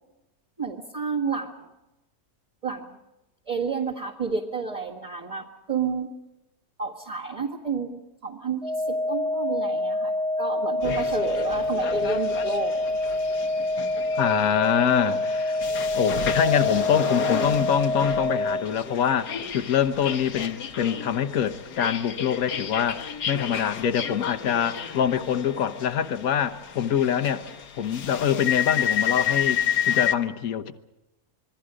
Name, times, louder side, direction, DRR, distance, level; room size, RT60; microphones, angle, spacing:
voice 1, 0.6-1.7 2.6-3.0 3.5-6.1 6.8-12.7 14.4-14.6, right 5 dB, 25° right, 2.0 m, -30 dB
sound 1, 8.6-18.6, left 1 dB, 25° left, 1.1 m, -26 dB
sound 2, 10.8-30.1, left 9 dB, 85° left, 1.8 m, -31 dB
voice 2, 14.2-15.6 15.9-27.5 27.8-29.6 29.9-30.7, left 8 dB, 65° left, 1.5 m, -25 dB
27.0 x 23.0 x 5.1 m
omnidirectional pair, 1.7 m